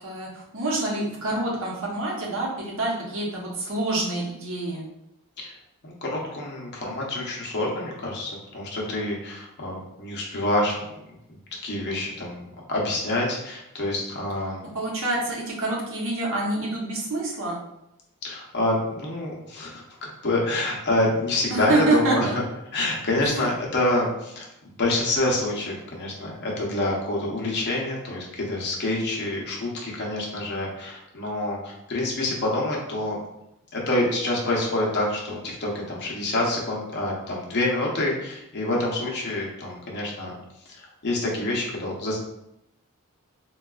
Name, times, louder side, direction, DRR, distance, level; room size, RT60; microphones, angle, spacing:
voice 1, 0.0-4.8 14.7-17.6 21.5-22.3 23.2-23.5, right 2 dB, 60° right, -3 dB, 0.8 m, -27 dB
voice 2, 5.8-10.8 11.5-14.7 18.2-22.4 22.7-24.5 24.8-33.2 33.7-40.3 40.8-42.2, left 2 dB, 50° left, -2 dB, 0.7 m, -27 dB
3.7 x 2.3 x 2.3 m, 0.84 s
head